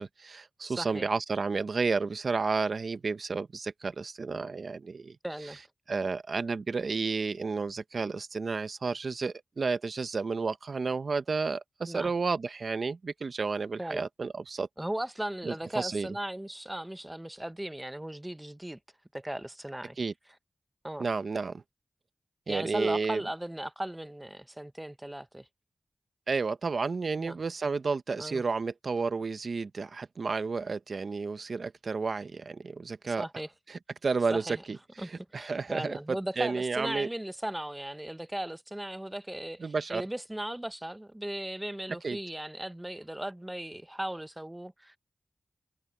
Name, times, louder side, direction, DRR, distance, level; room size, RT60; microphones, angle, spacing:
voice 1, 0.0-5.2 5.9-14.7 15.4-16.1 20.0-20.1 21.0-21.6 22.5-23.2 26.3-33.3 33.7-34.8 35.0-37.1 39.6-40.0 42.0-42.2, right 4 dB, 65° right, 1.1 m, -31 dB
voice 2, 0.6-1.1 5.2-5.6 11.9-12.1 13.8-14.0 14.8-18.8 19.1-20.0 20.8-21.1 22.5-25.5 27.2-27.4 28.2-28.4 33.1-33.5 34.3-34.6 35.0-45.0, right 1 dB, 15° right, 1.0 m, -37 dB
wide cardioid pair, 65°, 0 cm